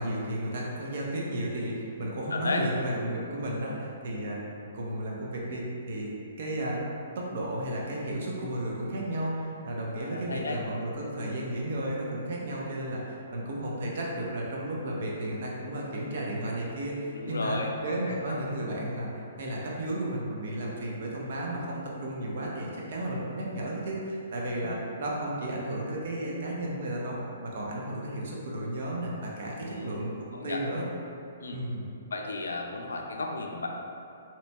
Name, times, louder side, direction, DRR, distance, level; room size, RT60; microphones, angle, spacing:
voice 1, 0.0-4.4 4.7-6.8 7.2-27.2 27.4-30.1 30.4-30.8 31.5-31.9, right 1 dB, 60° right, -3 dB, 0.7 m, -33 dB
voice 2, 2.3-2.6 10.0-10.6 17.1-18.4 24.6-24.8 29.6-30.0 30.3-30.6 31.4-31.6 32.1-33.8, left 3 dB, 85° left, 1 dB, 0.4 m, -34 dB
3.9 x 2.8 x 2.2 m, 2.6 s
hypercardioid pair, 135°, 0 cm